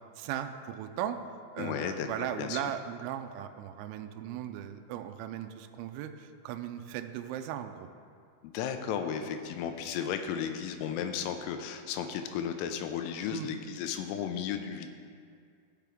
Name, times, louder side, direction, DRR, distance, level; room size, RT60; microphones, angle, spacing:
voice 1, 0.2-1.2 1.5-7.9 13.3-13.5, right 10 dB, 85° right, 7 dB, 2.8 m, -37 dB
voice 2, 1.6-2.6 8.4-14.9, left 8 dB, 90° left, 7 dB, 3.3 m, -34 dB
15.5 x 5.8 x 3.5 m, 2.2 s
omnidirectional pair, 5.7 m